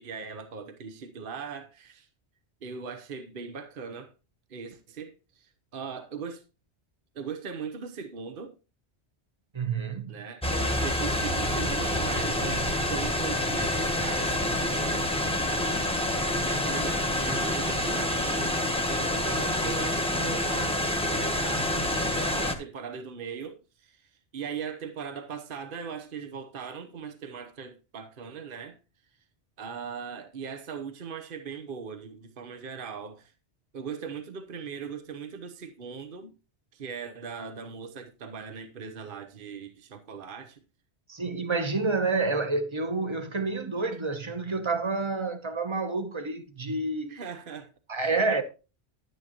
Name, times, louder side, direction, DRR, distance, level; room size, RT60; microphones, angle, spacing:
voice 1, 0.0-2.1 2.6-4.1 4.5-6.4 7.1-8.6 10.1-15.4 16.4-28.8 29.6-33.3 33.7-36.3 36.7-40.6 47.1-47.7 48.0-48.2, right 6 dB, 55° right, 1.1 m, -39 dB
voice 2, 9.5-10.2 41.1-47.2 47.9-48.4, right 3 dB, 25° right, 1.1 m, -29 dB
sound 1, 10.4-22.5, left 1 dB, 5° left, 1.1 m, -27 dB
11.0 x 9.4 x 3.0 m
omnidirectional pair, 1.1 m